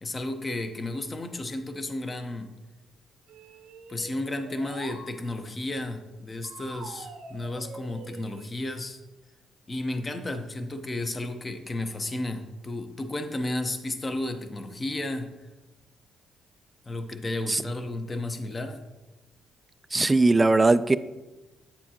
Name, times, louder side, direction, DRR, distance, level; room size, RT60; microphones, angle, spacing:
voice 1, 0.0-2.5 3.9-9.0 9.7-15.3 16.8-18.8, left 2 dB, 25° left, 7 dB, 0.8 m, -33 dB
sound 1, 3.3-5.1 6.4-8.5, right 4 dB, 80° right, 0.8 m, -44 dB
voice 2, 19.9-21.0, right 3 dB, 20° right, 14 dB, 0.3 m, -20 dB
8.9 x 7.2 x 2.9 m, 1.1 s
cardioid pair, 90°, 0 cm